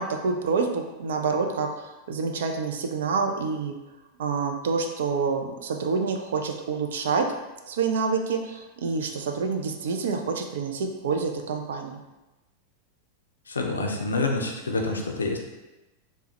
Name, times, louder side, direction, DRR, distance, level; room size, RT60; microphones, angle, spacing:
voice 1, 0.0-3.7 4.2-7.3 7.7-12.0, right 4 dB, 60° right, 4 dB, 0.3 m, -27 dB
voice 2, 13.5-15.4, left 3 dB, 75° left, 2 dB, 0.4 m, -27 dB
3.3 x 2.1 x 2.9 m, 1.1 s
figure-of-eight pair, 90°, 0 cm